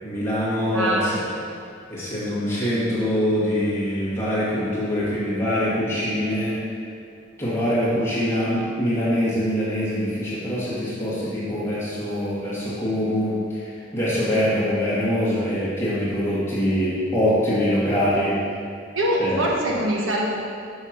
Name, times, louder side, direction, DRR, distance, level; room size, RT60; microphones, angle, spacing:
voice 1, 0.0-1.1 1.9-6.6 7.4-18.4 19.2-19.4, equal, 15° left, -8 dB, 2.0 m, -24 dB
voice 2, 0.7-1.6 18.9-20.3, right 1 dB, 85° right, -2 dB, 1.4 m, -24 dB
6.4 x 6.3 x 5.9 m, 2.3 s
head